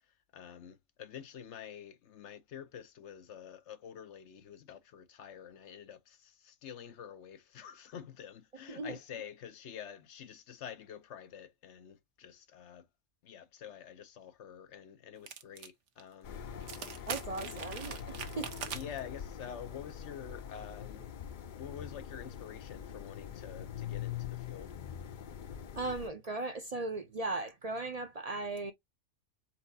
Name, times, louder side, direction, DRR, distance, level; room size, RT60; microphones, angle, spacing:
voice 1, 0.3-12.9 13.2-16.4 16.7-17.1 17.4-17.5 18.7-21.1 21.5-24.7, left 8 dB, 75° left, 1.0 m, -48 dB
snow ice crackle gore break bone, 15.3-15.7 16.0-16.1 16.6-19.0, right 7 dB, 85° right, 1.2 m, -42 dB
sound 1, 16.2-26.1, left 8 dB, 55° left, 0.6 m, -43 dB
voice 2, 17.1-18.5 25.8-28.7, right 2 dB, 45° right, 0.5 m, -37 dB
4.4 x 4.0 x 2.7 m
omnidirectional pair, 1.2 m